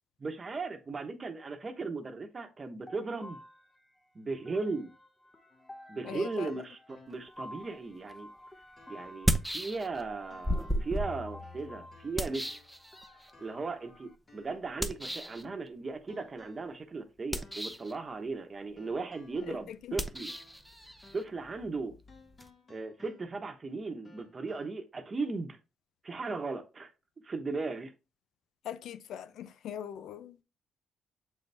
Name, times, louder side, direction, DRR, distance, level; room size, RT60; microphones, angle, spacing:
voice 1, 0.2-3.4 4.1-4.9 5.9-8.3 8.9-12.4 13.4-20.3 21.1-21.9 22.7-25.6 26.0-26.9 27.2-27.9, right 3 dB, 35° right, 1.0 m, -37 dB
sound 1, 2.9-14.2, left 1 dB, 20° left, 1.1 m, -52 dB
sound 2, 5.5-7.6 8.0-8.1 8.8-9.3 10.3-11.0 11.4-12.9 13.3-13.8 14.3-15.6 16.1-16.8 17.4-17.8 18.8-20.8 21.0-21.4 22.1-23.6 24.0-24.7, left 3 dB, 40° left, 1.6 m, -60 dB
voice 2, 6.0-6.5 19.5-20.0 28.6-30.4, left 10 dB, 75° left, 0.6 m, -41 dB
sound 3, 8.1-8.2 9.1-10.1 10.4-13.3 14.8-15.4 17.2-18.0 19.9-22.5, equal, ahead, 0.7 m, -35 dB
7.2 x 4.1 x 3.4 m
cardioid pair, 90°, 0 cm